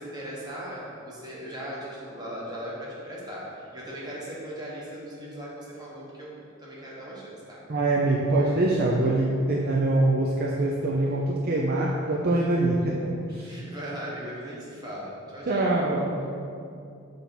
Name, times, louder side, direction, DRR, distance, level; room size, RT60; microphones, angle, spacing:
voice 1, 0.0-6.3 6.6-7.6 12.8-12.9 13.4-15.8, equal, 20° right, -6 dB, 1.3 m, -38 dB
voice 2, 7.7-13.5 15.5-16.2, right 2 dB, 45° right, -3 dB, 0.5 m, -24 dB
6.4 x 3.5 x 5.8 m, 2.5 s
head